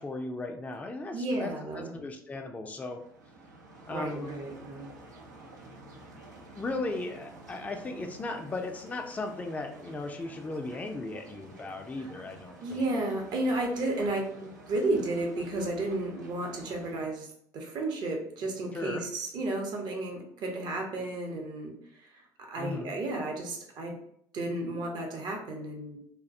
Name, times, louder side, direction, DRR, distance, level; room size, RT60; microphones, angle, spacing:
voice 1, 0.0-3.0 3.9-4.4 6.5-12.8 18.7-19.0 22.6-22.9, left 2 dB, 15° left, 4 dB, 0.3 m, -37 dB
voice 2, 1.1-1.9 3.9-4.9 12.0-12.1 12.6-17.3 17.5-23.9 24.3-26.0, right 2 dB, 50° right, 1 dB, 0.7 m, -33 dB
sound 1, 2.8-17.1, right 2 dB, 85° right, 0.4 m, -50 dB
2.2 x 2.1 x 2.6 m, 0.70 s
hypercardioid pair, 65°, 9 cm